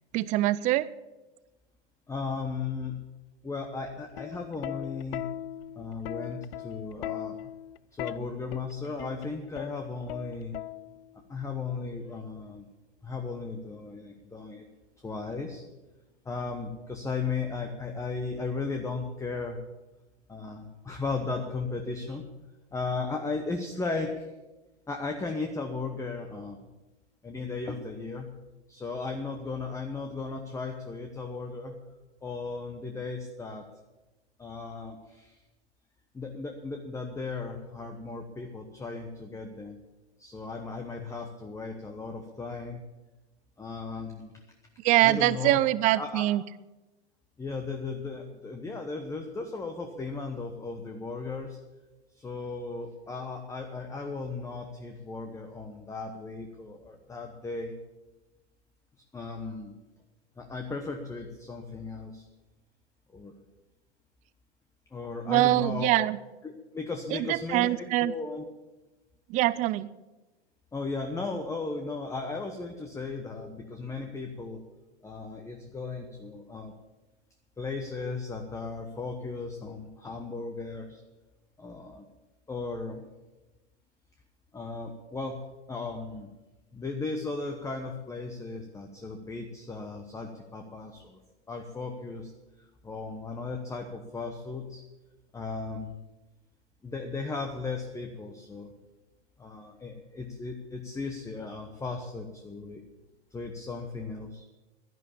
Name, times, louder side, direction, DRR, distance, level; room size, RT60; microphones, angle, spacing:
voice 1, 0.1-0.9 44.8-46.4 65.3-66.2 67.3-68.1 69.3-69.9, right 16 dB, 25° right, 18 dB, 0.4 m, -24 dB
voice 2, 2.1-3.0 3.4-5.3 5.8-7.5 7.9-10.5 11.3-12.7 13.0-14.6 15.0-15.6 16.2-19.6 20.3-22.3 22.7-24.3 24.9-26.7 27.2-28.3 28.7-31.8 32.2-33.6 34.4-35.4 36.1-39.8 40.2-42.8 43.6-44.3 45.0-45.6 45.9-46.3 47.4-51.6 52.1-57.8 59.1-59.8 60.4-62.3 63.1-63.3 64.9-66.1 66.4-68.5 70.7-74.6 75.0-76.7 77.6-81.0 81.6-82.0 82.5-83.1 84.5-85.4 85.7-86.3 86.7-91.2 91.5-92.3 92.6-94.8 95.3-96.0 96.8-98.7 99.4-102.8 103.3-104.4, left 4 dB, 10° left, 5 dB, 1.0 m, -36 dB
Plucked string instrument, 4.0-11.2 12.3-12.6, left 14 dB, 55° left, 0.5 m, -39 dB
11.0 x 10.5 x 8.5 m, 1.1 s
hypercardioid pair, 125°, 34 cm